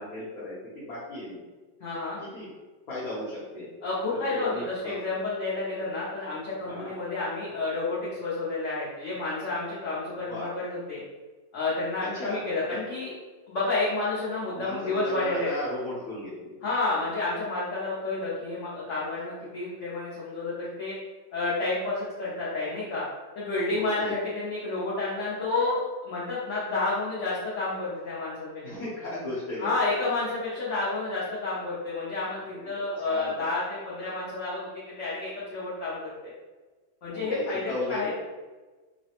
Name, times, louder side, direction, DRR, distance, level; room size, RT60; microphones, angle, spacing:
voice 1, 0.0-1.4 1.9-2.5 2.9-3.7 4.1-5.0 6.7-6.9 10.1-10.6 12.0-12.8 14.5-16.6 23.7-24.2 28.6-30.0 32.5-33.5 37.1-38.1, left 1 dB, 60° left, -9 dB, 1.1 m, -36 dB
voice 2, 1.8-2.2 3.8-11.0 11.5-13.1 13.5-15.5 16.6-21.0 21.3-23.0 23.4-28.5 29.6-36.3 37.0-38.1, left 3 dB, 80° left, -8 dB, 0.6 m, -30 dB
3.2 x 2.1 x 2.8 m, 1.3 s
omnidirectional pair, 2.1 m